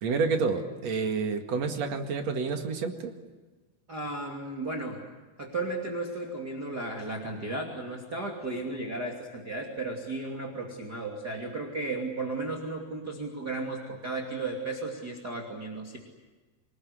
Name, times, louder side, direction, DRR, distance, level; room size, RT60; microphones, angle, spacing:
voice 1, 0.0-3.1, right 4 dB, 50° right, 5 dB, 2.7 m, -29 dB
voice 2, 3.9-5.0 5.4-16.0, right 2 dB, 25° right, 0 dB, 2.8 m, -34 dB
26.5 x 20.5 x 9.8 m, 1.2 s
omnidirectional pair, 4.6 m